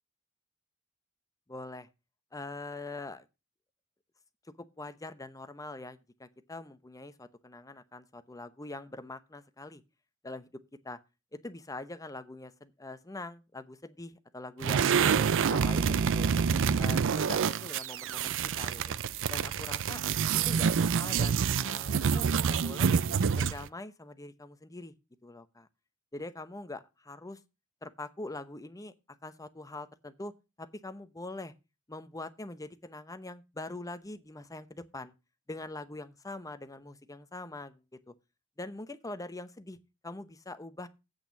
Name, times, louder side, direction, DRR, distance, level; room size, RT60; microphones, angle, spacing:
voice 1, 1.5-1.9 2.3-3.3 4.8-9.8 10.2-10.5 10.8-11.0 11.3-16.3 16.8-19.0 19.3-20.0 20.5-22.9 23.4-24.9 25.2-25.7 26.1-27.4 27.8-28.9 29.2-30.3 30.6-31.5 31.9-35.1 35.5-38.1 38.6-39.8 40.0-40.9, left 2 dB, 15° left, 0.8 m, -43 dB
sound 1, 14.6-23.7, right 6 dB, 60° right, 0.5 m, -27 dB
8.3 x 6.6 x 7.2 m
head